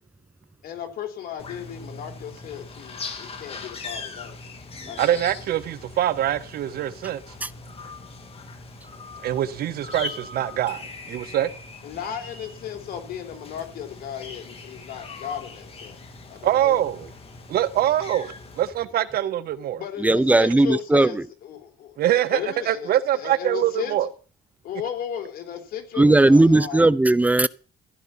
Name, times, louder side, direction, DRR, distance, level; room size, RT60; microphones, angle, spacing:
voice 1, 0.6-4.4 4.9-5.1 11.8-16.0 16.3-16.8 19.8-22.0 22.3-24.0 24.6-26.8, left 9 dB, 65° left, 3.9 m, -35 dB
sound 1, 1.4-18.7, left 3 dB, 35° left, 3.1 m, -40 dB
voice 2, 5.0-7.2 9.2-11.5 16.4-17.1 17.5-19.8 22.0-22.4 22.7-24.1, right 12 dB, 65° right, 1.4 m, -24 dB
voice 3, 20.0-21.2 26.0-27.5, right 2 dB, 10° right, 0.6 m, -17 dB
15.5 x 10.5 x 5.8 m
cardioid pair, 110°, 17 cm